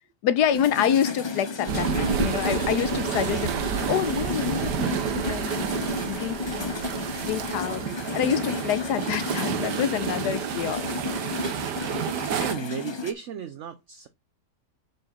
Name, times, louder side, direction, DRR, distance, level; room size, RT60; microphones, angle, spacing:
voice 1, 0.2-5.0 5.3-6.8 7.2-11.2, left 9 dB, 75° left, 1.3 m, -27 dB
sound 1, 0.5-13.1, left 5 dB, 30° left, 0.4 m, -33 dB
sound 2, 1.7-12.5, right 9 dB, 75° right, 1.5 m, -30 dB
voice 2, 12.3-14.1, right 8 dB, 60° right, 0.9 m, -34 dB
6.3 x 4.8 x 5.7 m
omnidirectional pair, 1.8 m